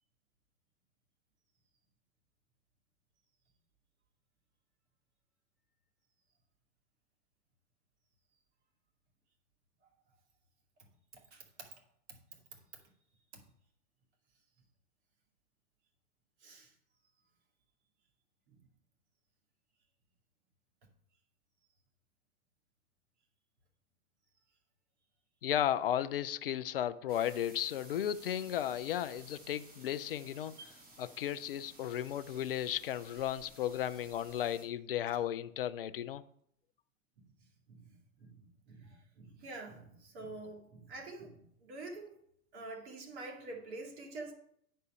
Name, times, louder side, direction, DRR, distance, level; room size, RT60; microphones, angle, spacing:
voice 1, 11.3-11.7 16.4-16.7 37.7-42.1 42.5-44.3, right 2 dB, 50° right, 2.3 m, -47 dB
voice 2, 25.4-36.2, left 11 dB, 40° left, 0.4 m, -35 dB
sound 1, 27.1-34.7, right 2 dB, 20° right, 2.1 m, -56 dB
9.3 x 4.4 x 5.5 m
figure-of-eight pair, 105°, 44 cm